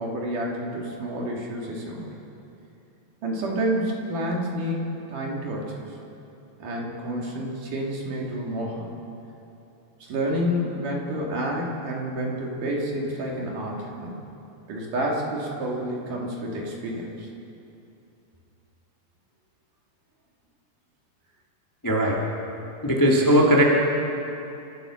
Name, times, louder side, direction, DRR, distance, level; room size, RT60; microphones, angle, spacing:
voice 1, 0.0-2.1 3.2-5.8 6.6-8.9 10.1-14.2 14.7-17.3, equal, 55° right, -2 dB, 3.7 m, -29 dB
voice 2, 21.8-22.2 22.8-23.6, equal, 10° left, -3 dB, 1.1 m, -18 dB
29.5 x 13.5 x 6.5 m, 2.8 s
omnidirectional pair, 4.9 m